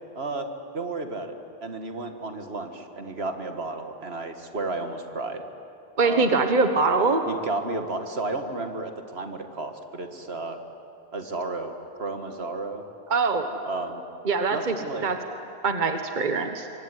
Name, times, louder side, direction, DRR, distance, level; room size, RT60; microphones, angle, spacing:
voice 1, 0.2-0.5 0.7-1.3 1.6-5.4 6.0-10.6 11.1-12.8 13.7-14.0 14.5-15.1, right 3 dB, 70° right, 6 dB, 2.1 m, -33 dB
voice 2, 6.0-7.2 13.1-13.5 14.2-14.7 15.0-15.2 15.6-16.7, right 4 dB, 45° right, 6 dB, 1.5 m, -23 dB
25.0 x 24.0 x 9.9 m, 2.8 s
omnidirectional pair, 1.1 m